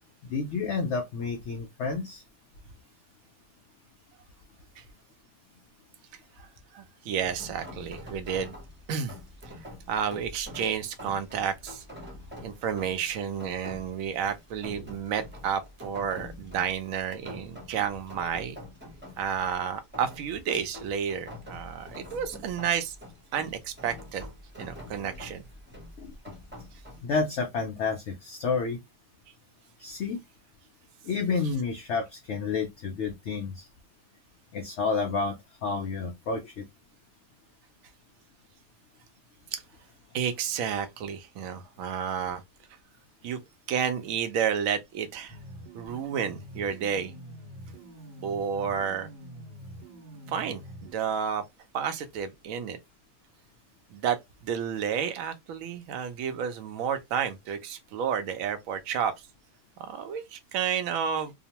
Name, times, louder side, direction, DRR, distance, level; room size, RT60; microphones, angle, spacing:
voice 1, 0.3-2.2 26.0-26.1 27.0-28.8 29.8-30.2 31.0-33.7 34.5-36.6, left 4 dB, 85° left, 0.6 m, -30 dB
voice 2, 6.7-8.6 8.9-9.1 9.9-11.8 12.4-18.6 19.2-23.0 23.3-24.3 24.6-25.4 39.5-39.6 40.1-42.4 43.2-43.4 43.7-45.4 45.7-47.1 48.2-49.1 50.3-51.4 51.7-52.8 53.9-59.1 59.9-61.3, right 8 dB, 70° right, 0.8 m, -31 dB
Rain, 7.2-27.0, left 1 dB, 10° right, 0.5 m, -46 dB
sound 1, 45.3-50.9, right 1 dB, 85° right, 1.3 m, -45 dB
2.9 x 2.0 x 2.8 m
omnidirectional pair, 1.8 m